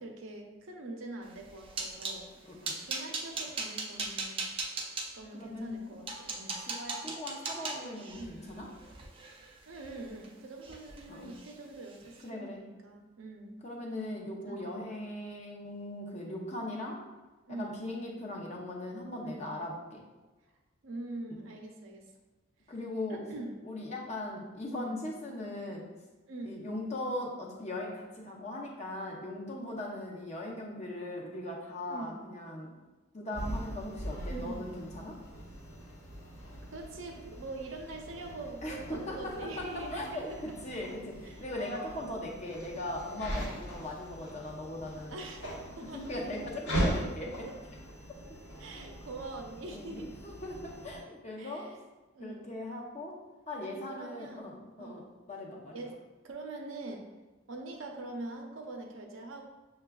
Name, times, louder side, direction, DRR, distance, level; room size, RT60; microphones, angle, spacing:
voice 1, 0.0-4.5 5.1-6.6 8.2-8.5 9.7-13.6 14.5-14.8 17.5-17.8 19.2-19.6 20.8-22.1 23.1-23.5 24.7-25.0 26.3-26.6 31.9-32.2 34.3-34.7 36.7-42.1 44.2-44.5 45.1-46.0 47.2-47.5 48.6-50.1 51.4-51.8 52.1-52.5 53.6-54.5 54.8-55.1 55.7-55.9 56.2-57.0 57.5-59.5, right 2 dB, 75° right, 2 dB, 0.6 m, -44 dB
sound 1, 1.3-2.2 2.6-5.1 5.7-5.8 6.1-10.3 10.6-11.0 11.3-11.5 11.9-12.1, right 3 dB, 25° right, 0.4 m, -38 dB
voice 2, 5.3-5.9 6.6-8.7 11.1-11.3 12.2-12.6 13.6-17.0 17.5-20.0 21.3-21.4 22.7-23.2 23.6-25.9 26.4-32.7 33.1-35.2 38.6-45.2 45.9-47.5 48.7-48.8 49.7-51.7 52.2-53.2 53.5-55.9, left 1 dB, 35° left, -1 dB, 0.6 m, -39 dB
sound 2, 33.3-51.0, right 1 dB, 65° left, 1.1 m, -40 dB
6.6 x 2.3 x 2.3 m, 1.2 s
head